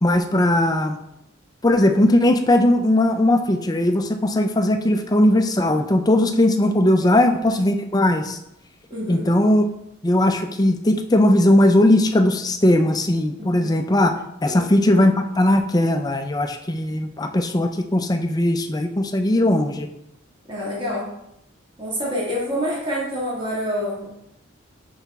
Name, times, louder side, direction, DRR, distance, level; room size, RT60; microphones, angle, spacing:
voice 1, 0.0-1.0 1.6-8.4 9.1-9.6 10.0-14.2 14.4-19.9, left 1 dB, 20° left, 6 dB, 0.5 m, -18 dB
voice 2, 8.9-9.2 13.4-13.6 14.5-14.7 20.5-21.1 21.8-24.1, equal, 25° right, -6 dB, 1.9 m, -27 dB
5.6 x 5.5 x 3.5 m, 0.81 s
head